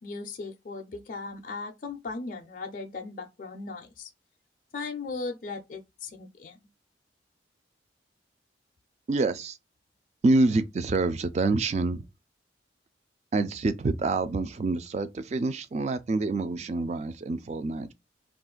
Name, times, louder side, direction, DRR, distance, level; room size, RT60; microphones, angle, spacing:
voice 1, 0.0-4.1 4.7-6.6, left 3 dB, 45° left, 0.4 m, -37 dB
voice 2, 9.1-9.6 10.2-12.0 13.3-17.9, right 3 dB, 35° right, 0.3 m, -26 dB
2.4 x 2.4 x 3.7 m
head